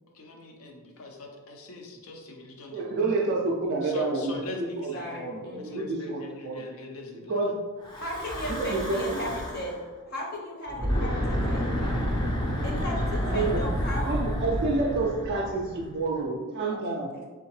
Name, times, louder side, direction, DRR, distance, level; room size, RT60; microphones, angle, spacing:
voice 1, 0.1-2.9 3.8-7.4, left 2 dB, 70° left, 2 dB, 0.6 m, -41 dB
voice 2, 2.7-6.6 7.1-7.6 8.5-9.3 11.1-11.2 13.2-13.6 14.0-17.1, right 3 dB, 50° right, -1 dB, 0.3 m, -29 dB
voice 3, 4.9-5.8 8.0-9.8 10.1-11.7 12.6-14.1 15.3-15.5 16.1-16.3 16.7-17.2, left 1 dB, 45° left, -2 dB, 0.9 m, -36 dB
Breathing / Wind, 7.8-9.8 10.7-16.1, equal, 20° left, 0.5 m, -29 dB
3.5 x 3.4 x 3.1 m, 1.4 s
head